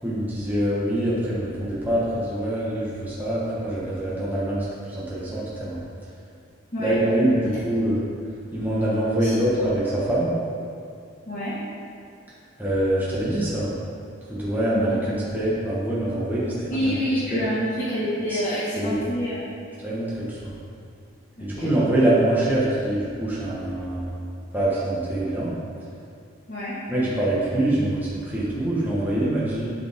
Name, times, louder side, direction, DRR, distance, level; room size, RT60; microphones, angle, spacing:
voice 1, 0.0-5.8 6.8-8.0 8.5-10.3 12.6-13.7 14.3-16.9 17.3-17.4 18.3-18.4 18.8-19.1 19.8-20.5 21.4-24.1 24.5-25.5 26.9-29.7, right 1 dB, 10° right, -9 dB, 1.3 m, -24 dB
voice 2, 11.3-11.6 14.7-15.0 16.7-19.4 21.4-21.7 26.5-26.8, equal, 40° left, -10 dB, 1.4 m, -27 dB
11.5 x 5.0 x 3.6 m, 2.4 s
head